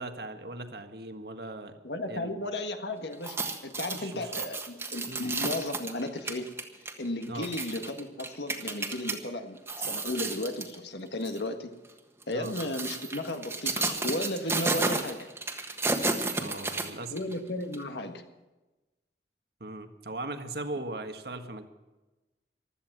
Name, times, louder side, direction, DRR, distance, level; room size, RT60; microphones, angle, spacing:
voice 1, 0.0-1.8 2.1-2.3 3.9-4.3 5.1-5.3 7.3-7.5 12.3-12.5 16.4-17.1 19.6-21.6, right 2 dB, 65° right, 7 dB, 1.6 m, -39 dB
voice 2, 1.8-3.4 3.6-6.5 7.0-11.7 12.3-15.2 17.1-18.2, left 1 dB, 80° left, 6 dB, 1.6 m, -34 dB
sound 1, 3.1-9.2 9.6-10.8 11.2-11.4 12.2-17.3 17.7-17.8, right 3 dB, 15° right, 1.4 m, -32 dB
15.5 x 13.0 x 6.1 m, 1.1 s
head